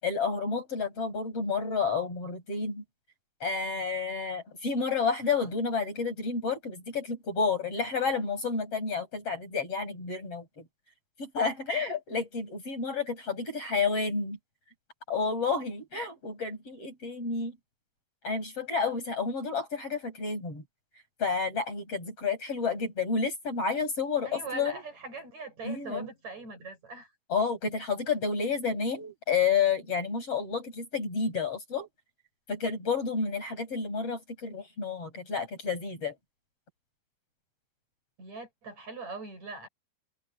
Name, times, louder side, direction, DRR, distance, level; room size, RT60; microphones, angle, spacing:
voice 1, 0.0-2.8 3.4-10.4 11.2-14.4 15.1-17.5 18.2-20.6 21.2-24.8 25.6-26.1 27.3-31.9 32.5-36.1, left 5 dB, 35° left, 8.2 m, -30 dB
voice 2, 24.2-27.1 38.2-39.7, right 3 dB, 40° right, 7.5 m, -41 dB
omnidirectional pair, 4.8 m